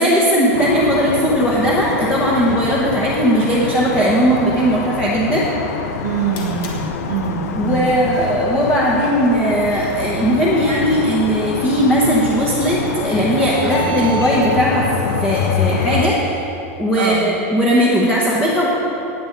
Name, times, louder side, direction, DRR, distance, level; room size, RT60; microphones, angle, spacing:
voice 1, 0.0-5.5 7.6-14.9 15.2-16.2 16.8-18.7, equal, 10° left, -5 dB, 1.1 m, -17 dB
sound 1, 0.5-16.1, left 7 dB, 85° left, 0.8 m, -26 dB
sound 2, 6.0-14.3, right 2 dB, 30° left, 1.5 m, -35 dB
voice 2, 6.0-7.9 13.6-13.9 17.0-17.3, right 8 dB, 80° right, 3 dB, 1.4 m, -24 dB
18.5 x 7.9 x 4.0 m, 3.0 s
supercardioid pair, 180°, 8 cm